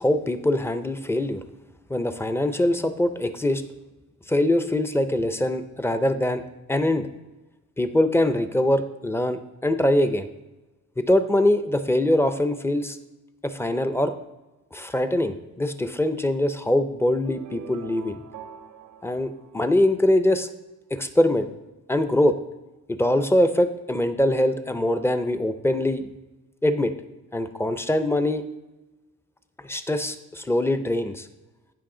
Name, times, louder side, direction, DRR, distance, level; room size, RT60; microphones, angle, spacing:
voice 1, 0.0-1.4 1.9-3.6 4.3-6.4 6.7-7.1 7.8-10.3 11.0-13.0 13.4-14.1 14.7-18.2 19.0-20.5 20.9-21.5 21.9-22.3 22.9-26.1 26.6-26.9 27.3-28.4 29.6-31.3, left 1 dB, 10° left, 9 dB, 0.5 m, -23 dB
sound 1, 17.2-20.3, right 6 dB, 80° right, 0.7 m, -44 dB
15.0 x 5.5 x 3.8 m, 1.1 s
wide cardioid pair, 145°, 31 cm